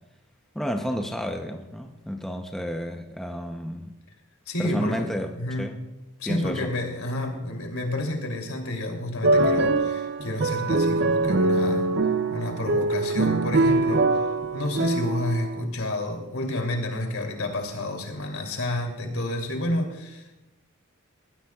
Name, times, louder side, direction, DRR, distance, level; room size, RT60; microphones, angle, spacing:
voice 1, 0.5-4.0 4.6-5.3 5.6-5.8 6.2-6.7, equal, ahead, 4 dB, 0.7 m, -31 dB
voice 2, 4.5-5.7 6.2-11.9 12.3-14.2 14.5-20.4, left 1 dB, 80° left, 2 dB, 3.0 m, -30 dB
sound 1, 9.2-15.6, right 2 dB, 50° right, 0.5 m, -23 dB
20.0 x 15.5 x 2.4 m, 1.0 s
head